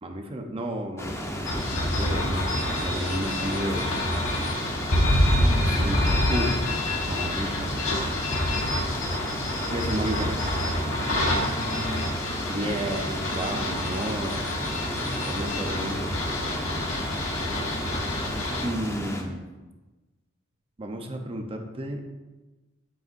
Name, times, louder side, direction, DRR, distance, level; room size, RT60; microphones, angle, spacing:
voice 1, 0.0-4.0 5.6-6.0 6.3-6.6 7.0-7.7 9.7-10.4 12.4-14.6 15.3-16.1 18.6-19.4 20.8-22.0, right 1 dB, 25° right, 4 dB, 0.7 m, -32 dB
sound 1, 1.0-19.2, equal, 15° left, 0.8 m, -34 dB
sound 2, 1.5-18.7, left 1 dB, 80° left, 1.3 m, -27 dB
voice 2, 5.3-5.8 11.4-14.4 17.3-18.2, right 1 dB, 60° right, -1 dB, 1.5 m, -39 dB
8.0 x 7.8 x 2.6 m, 1.2 s
head